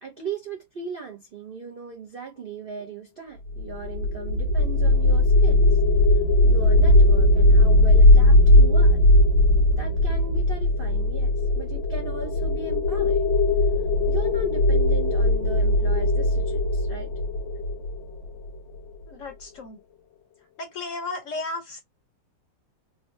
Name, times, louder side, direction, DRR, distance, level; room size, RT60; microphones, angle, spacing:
voice 1, 0.0-5.6 6.4-9.0 9.8-13.3 14.1-17.1, right 5 dB, 85° right, 0.4 m, -37 dB
sound 1, 3.6-18.8, left 1 dB, 80° left, 1.6 m, -19 dB
voice 2, 19.1-19.8 20.6-21.8, left 3 dB, 60° left, 0.9 m, -34 dB
3.8 x 2.1 x 2.6 m
omnidirectional pair, 2.0 m